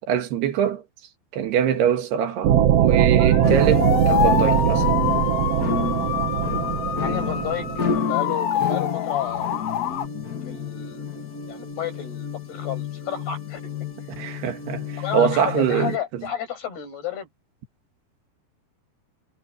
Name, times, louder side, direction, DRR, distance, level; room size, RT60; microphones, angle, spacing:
voice 1, 0.1-0.8 1.3-4.9 14.2-16.2, right 9 dB, 90° right, 3.9 m, -24 dB
sound 1, 2.4-8.0, right 10 dB, 75° right, 1.4 m, -21 dB
sound 2, 3.2-10.1, left 10 dB, 65° left, 2.5 m, -26 dB
sound 3, 3.4-16.0, left 6 dB, 45° left, 1.1 m, -31 dB
voice 2, 7.0-9.5 10.4-11.1 11.5-13.6 14.0-14.1 15.0-17.3, left 9 dB, 80° left, 8.8 m, -31 dB
omnidirectional pair, 4.5 m